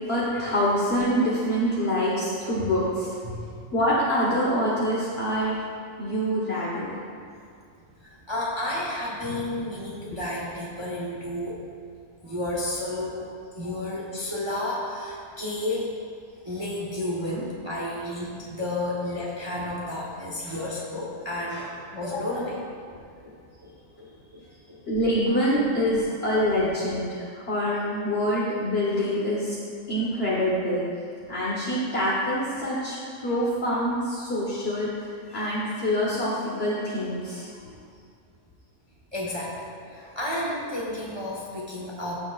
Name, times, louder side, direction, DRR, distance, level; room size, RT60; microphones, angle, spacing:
voice 1, 0.0-3.3 3.7-5.6 6.0-6.9 20.4-20.6 21.5-21.6 24.9-29.6 29.9-30.8 31.3-33.0 33.2-34.9 35.3-37.7 40.0-40.1, equal, 50° left, -7 dB, 1.4 m, -25 dB
voice 2, 3.2-3.7 8.0-11.6 12.2-13.3 13.6-15.9 16.4-23.4 23.6-23.7 24.0-24.1 24.3-24.4 24.7-24.8 39.1-42.1, left 1 dB, 20° right, -5 dB, 1.0 m, -32 dB
14.0 x 7.0 x 2.4 m, 2.3 s
omnidirectional pair, 1.4 m